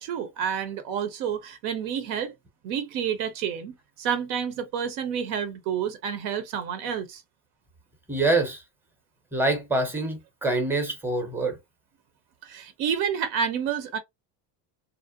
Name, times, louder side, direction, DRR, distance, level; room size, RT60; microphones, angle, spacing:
voice 1, 0.0-2.3 2.6-7.2 12.4-14.0, right 8 dB, 70° right, 0.7 m, -29 dB
voice 2, 8.1-8.6 9.3-11.6, right 2 dB, 5° right, 0.7 m, -25 dB
2.5 x 2.1 x 2.4 m
supercardioid pair, 125°, 48 cm